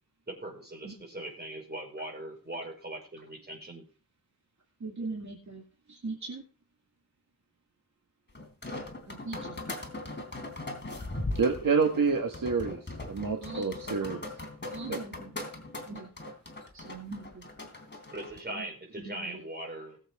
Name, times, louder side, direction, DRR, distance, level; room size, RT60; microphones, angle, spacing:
voice 1, 0.3-3.8 18.1-20.0, right 1 dB, 30° right, 0 dB, 5.1 m, -40 dB
voice 2, 4.8-5.6 5.9-6.4 9.1-9.6 13.4-13.7 14.7-15.3 15.9-16.1 16.7-17.4 18.5-18.7 19.0-19.5, right 3 dB, 55° right, 0 dB, 2.4 m, -40 dB
sound 1, 8.3-18.4, left 2 dB, 30° left, 3.4 m, -39 dB
voice 3, 11.3-12.8 13.0-14.2 14.9-15.0, right 5 dB, 70° right, 3 dB, 1.6 m, -27 dB
20.0 x 7.6 x 3.6 m, 0.37 s
wide cardioid pair, 100°, 34 cm